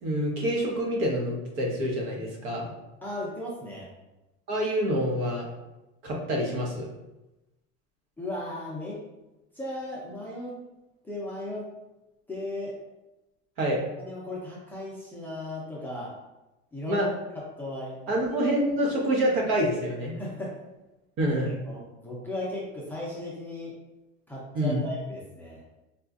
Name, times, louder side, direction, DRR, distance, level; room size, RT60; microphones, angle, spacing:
voice 1, 0.0-2.7 4.5-5.5 6.0-6.9 13.6-13.8 16.9-17.1 18.1-20.1 21.2-21.5 24.5-24.8, equal, 65° right, -2 dB, 1.1 m, -27 dB
voice 2, 3.0-3.9 8.2-9.0 9.5-10.6 11.0-11.7 12.3-12.7 14.0-16.1 16.7-17.0 17.3-18.1 20.2-20.6 21.7-23.7 24.3-25.6, left 1 dB, 5° left, -6 dB, 0.5 m, -36 dB
4.2 x 2.4 x 2.4 m, 0.99 s
cardioid pair, 145°, 32 cm